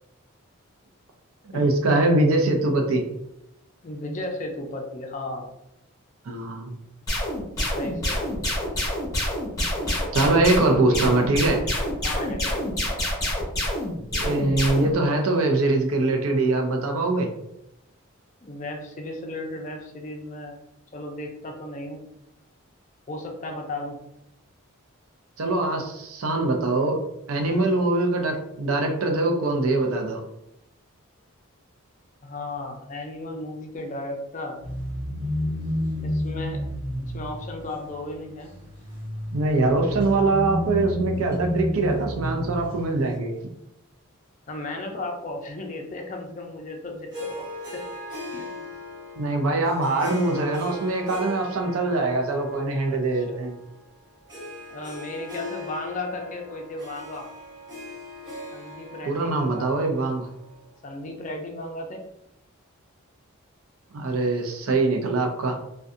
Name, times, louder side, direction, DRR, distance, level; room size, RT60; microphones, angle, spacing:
voice 1, 1.5-3.0 6.3-6.8 10.1-11.6 14.1-17.3 25.4-27.0 27.3-30.2 39.3-43.3 49.2-53.5 59.1-60.3 63.9-65.6, right 2 dB, 75° right, 3 dB, 0.5 m, -23 dB
voice 2, 3.8-5.5 7.8-8.5 12.0-12.6 18.4-20.5 20.9-22.0 23.1-24.0 27.4-27.6 32.2-34.6 36.0-36.6 37.0-38.5 44.5-47.9 48.3-48.5 52.9-53.4 54.7-57.3 58.5-59.7 60.8-62.0, left 2 dB, 35° left, 2 dB, 0.4 m, -35 dB
sound 1, 7.1-14.9, left 1 dB, 15° left, 0.8 m, -27 dB
sound 2, 34.6-43.0, left 1 dB, 55° right, 1.3 m, -30 dB
Harp, 47.1-60.7, left 1 dB, 20° right, 0.7 m, -39 dB
2.6 x 2.2 x 2.4 m, 0.83 s
head